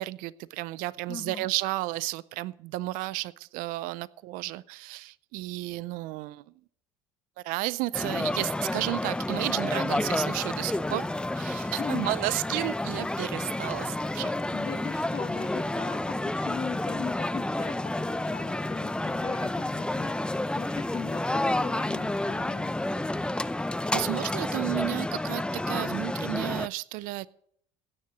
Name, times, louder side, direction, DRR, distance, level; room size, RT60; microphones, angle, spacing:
voice 1, 0.0-6.4 7.4-11.1 11.3-14.3 23.9-27.3, right 18 dB, 75° right, 20 dB, 0.5 m, -32 dB
voice 2, 1.1-1.5 11.8-12.1 14.5-22.7, left 6 dB, 40° left, 3 dB, 1.5 m, -38 dB
sound 1, 7.9-26.7, left 1 dB, 5° left, 0.6 m, -30 dB
16.5 x 6.7 x 7.8 m, 0.67 s
supercardioid pair, 75°, 14 cm